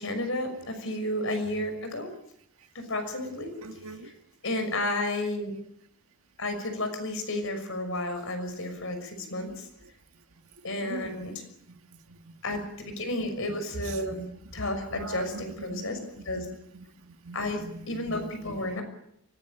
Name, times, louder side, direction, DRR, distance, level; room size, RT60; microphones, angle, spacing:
voice 1, 0.0-2.1 2.7-3.5 4.0-4.1 4.4-5.5 6.4-9.7 10.6-11.4 12.4-14.3 14.5-16.0 16.2-16.5 17.3-17.6 17.9-18.8, left 1 dB, 65° left, 6.1 m, -32 dB
voice 2, 3.6-4.1 10.8-11.3 11.7-11.8 12.1-12.3 13.8-14.0 14.9-18.6, right 3 dB, 75° right, 1.7 m, -42 dB
24.0 x 17.5 x 9.0 m
head